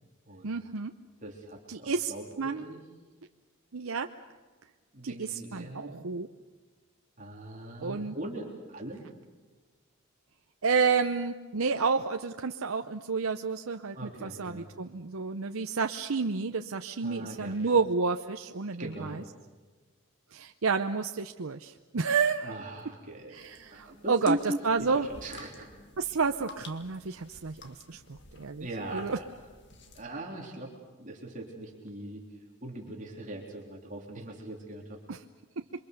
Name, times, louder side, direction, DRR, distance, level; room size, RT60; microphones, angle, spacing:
voice 1, 0.4-0.9 1.7-2.7 3.7-4.1 5.0-6.3 7.8-8.2 10.6-19.2 20.3-22.6 23.3-25.1 26.0-29.2 35.1-35.2, right 5 dB, 80° right, 6 dB, 0.8 m, -30 dB
voice 2, 1.2-2.8 4.9-6.0 7.2-9.0 13.9-14.7 17.0-17.8 18.8-19.2 22.4-23.4 23.7-25.7 28.6-29.3 29.9-30.7 31.0-32.3 32.6-35.0, right 1 dB, 35° right, -1 dB, 3.6 m, -39 dB
sound 1, 23.3-30.0, left 3 dB, 55° left, 2.0 m, -52 dB
28.0 x 24.0 x 6.8 m, 1.3 s
head